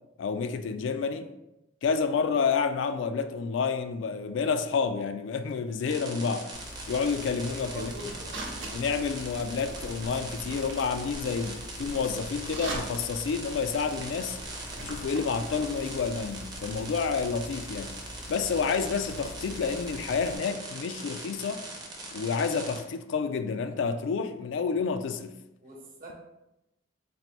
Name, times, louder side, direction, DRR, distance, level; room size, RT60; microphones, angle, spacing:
voice 1, 0.2-1.3 1.8-6.5 6.9-7.9 8.7-14.4 14.8-18.0 18.3-21.6 22.1-25.4, left 5 dB, 75° left, 9 dB, 0.3 m, -29 dB
sound 1, 5.8-22.8, right 2 dB, 20° right, 0.6 m, -42 dB
sound 2, 6.5-20.4, right 1 dB, 80° right, 0.8 m, -42 dB
voice 2, 7.7-8.4 25.6-26.1, equal, 50° right, -1 dB, 1.0 m, -42 dB
4.2 x 2.5 x 3.1 m, 0.91 s
head